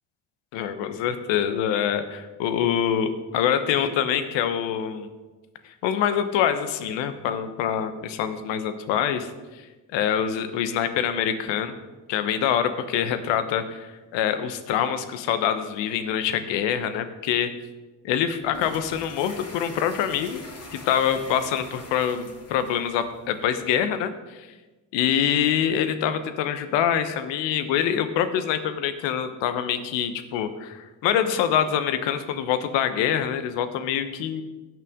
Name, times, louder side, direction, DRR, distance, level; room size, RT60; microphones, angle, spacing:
voice 1, 0.5-5.1 5.6-9.6 9.9-11.7 12.1-17.5 18.0-20.4 20.7-24.1 24.4-24.5 24.9-34.4, left 9 dB, 80° left, 10 dB, 1.0 m, -25 dB
sound 1, 18.4-23.5, left 2 dB, 35° left, 2.1 m, -43 dB
16.5 x 6.0 x 3.6 m, 1.2 s
hypercardioid pair, 50°, 44 cm